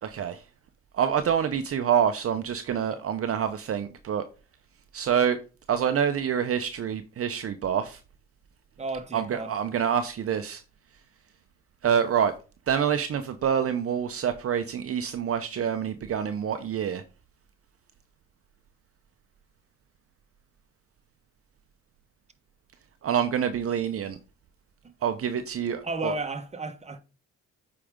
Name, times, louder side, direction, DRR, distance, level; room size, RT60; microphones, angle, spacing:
voice 1, 0.0-0.4 0.9-4.2 4.9-5.4 5.7-8.0 9.1-10.6 11.8-12.3 12.7-17.0 23.0-24.2 25.0-26.1, right 8 dB, 50° right, 0.7 m, -26 dB
voice 2, 8.8-9.5 24.8-24.9 25.8-27.0, right 2 dB, 20° right, 1.2 m, -33 dB
8.3 x 4.9 x 3.7 m
cardioid pair, 90°, 30 cm